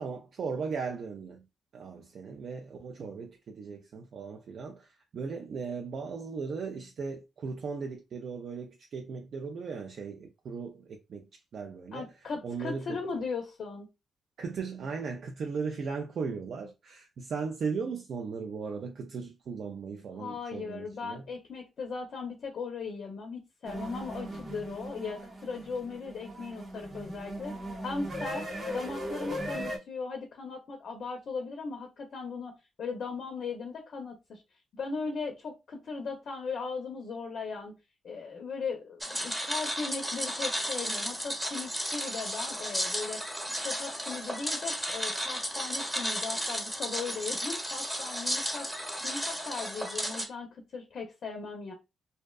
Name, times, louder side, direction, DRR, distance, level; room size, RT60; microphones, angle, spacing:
voice 1, 0.0-1.4 1.7-12.1 12.4-13.2 14.4-21.3, right 5 dB, 60° right, 0.3 m, -37 dB
voice 2, 11.9-13.9 20.2-27.6 27.8-28.4 28.7-34.4 34.7-37.7 38.0-43.3 43.6-48.7 49.0-51.7, left 4 dB, 60° left, 0.5 m, -38 dB
sound 1, 23.6-29.8, equal, 40° right, 0.7 m, -38 dB
sound 2, 39.0-50.3, equal, 10° right, 0.9 m, -34 dB
2.6 x 2.1 x 2.2 m
cardioid pair, 110°, 0 cm